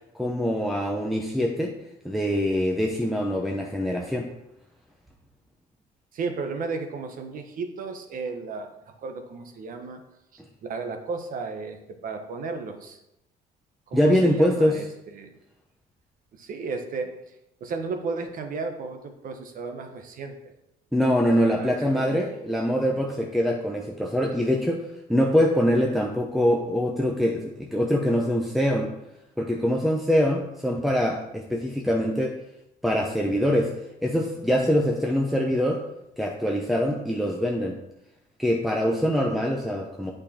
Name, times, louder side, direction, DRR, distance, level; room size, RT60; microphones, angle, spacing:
voice 1, 0.1-1.8 2.0-4.3 13.9-14.8 20.9-28.9 29.4-32.4 32.8-33.7 34.0-35.8 36.2-37.8 38.4-40.1, equal, ahead, 0 dB, 0.9 m, -24 dB
voice 2, 6.1-8.7 9.0-10.0 10.3-13.0 13.9-15.3 16.3-17.2 17.6-20.3 21.6-22.6, right 4 dB, 55° right, 6 dB, 1.2 m, -34 dB
8.7 x 5.3 x 4.4 m, 0.86 s
cardioid pair, 110°, 17 cm